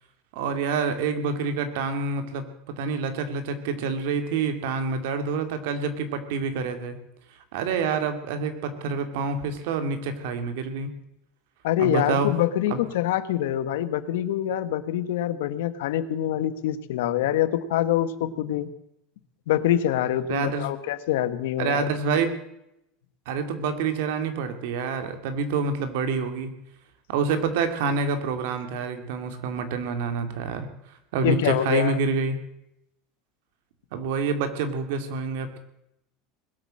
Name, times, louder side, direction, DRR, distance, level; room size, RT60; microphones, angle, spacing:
voice 1, 0.3-2.5 2.8-7.0 7.5-10.9 11.8-12.3 12.7-12.8 20.3-20.7 21.6-22.4 23.3-26.5 27.1-30.7 31.1-32.4 33.9-35.6, right 4 dB, 70° right, 8 dB, 2.4 m, -27 dB
voice 2, 11.6-18.7 19.5-21.9 31.2-32.0, left 11 dB, 90° left, 13 dB, 1.3 m, -25 dB
20.5 x 8.6 x 7.6 m, 0.81 s
supercardioid pair, 165°, 0 cm